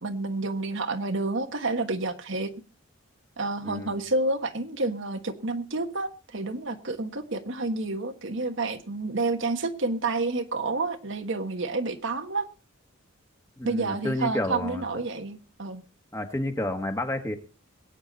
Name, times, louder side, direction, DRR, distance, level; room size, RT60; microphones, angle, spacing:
voice 1, 0.0-2.5 3.4-12.5 13.6-15.8, right 3 dB, 60° right, 7 dB, 1.4 m, -29 dB
voice 2, 3.6-4.0 13.6-14.8 16.1-17.3, left 1 dB, 15° left, 5 dB, 1.7 m, -30 dB
22.0 x 9.2 x 4.0 m, 0.32 s
head